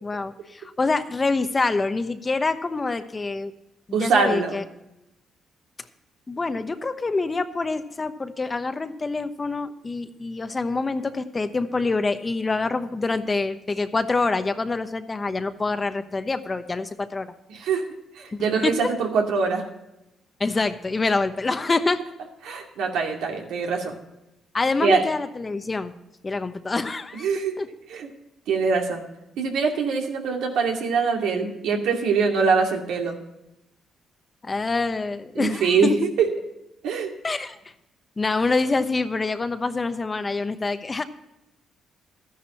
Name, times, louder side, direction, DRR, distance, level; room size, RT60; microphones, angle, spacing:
voice 1, 0.0-3.5 3.9-4.6 6.3-17.3 18.6-18.7 20.4-22.0 24.5-25.9 26.2-27.3 27.6-27.7 34.4-35.9 37.2-37.6 38.2-41.0, left 3 dB, 30° left, 10 dB, 1.0 m, -26 dB
voice 2, 3.9-4.6 17.5-17.8 18.2-19.6 22.4-24.0 24.8-25.0 27.2-27.5 27.9-28.1 28.5-29.0 29.4-33.2 35.3-35.9 36.2-36.3 36.8-37.1, right 5 dB, 85° right, 1 dB, 2.4 m, -23 dB
13.0 x 10.5 x 4.3 m, 0.90 s
cardioid pair, 80°, 0 cm